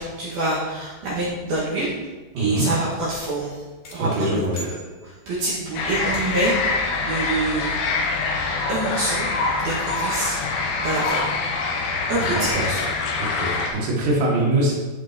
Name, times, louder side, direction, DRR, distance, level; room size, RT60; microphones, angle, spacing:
voice 1, 0.0-1.9 2.4-3.6 3.9-4.7 5.0-7.8 8.7-9.3 9.6-10.4 10.8-11.3 12.1-12.8, right 2 dB, 60° right, -8 dB, 3.1 m, -26 dB
voice 2, 2.3-2.7 4.0-4.6 12.4-12.7 13.2-14.7, right 1 dB, 85° right, -4 dB, 4.8 m, -23 dB
sound 1, 3.8-5.5 6.1-6.7, left 1 dB, 50° left, 3.4 m, -42 dB
sound 2, 5.8-13.7, left 3 dB, 75° left, 3.6 m, -25 dB
15.0 x 5.9 x 3.0 m, 1.3 s
omnidirectional pair, 5.6 m